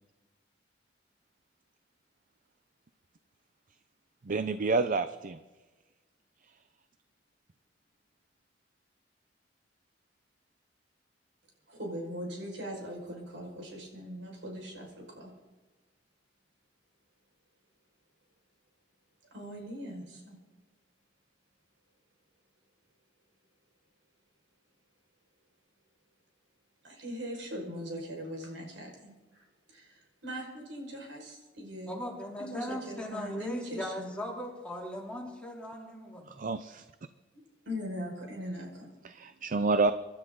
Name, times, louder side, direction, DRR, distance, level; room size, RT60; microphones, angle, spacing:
voice 1, 4.3-5.4 36.4-36.8 39.0-39.9, right 3 dB, 45° right, 12 dB, 0.6 m, -28 dB
voice 2, 11.7-15.3 19.3-20.4 26.8-32.0 32.4-34.1 37.7-38.9, equal, 90° right, 0 dB, 5.5 m, -40 dB
voice 3, 31.9-36.3, left 1 dB, 5° left, -2 dB, 3.1 m, -39 dB
26.0 x 12.5 x 3.9 m, 1.2 s
head